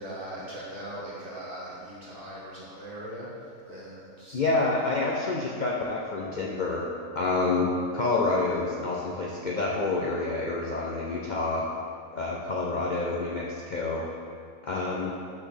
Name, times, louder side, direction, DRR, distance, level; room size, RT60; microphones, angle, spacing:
voice 1, 0.0-3.3 3.6-4.4, right 1 dB, 40° right, -8 dB, 2.0 m, -40 dB
voice 2, 4.3-11.7 12.1-14.1 14.6-15.1, left 3 dB, 50° left, -3 dB, 0.6 m, -28 dB
6.4 x 4.1 x 6.3 m, 2.3 s
omnidirectional pair, 1.4 m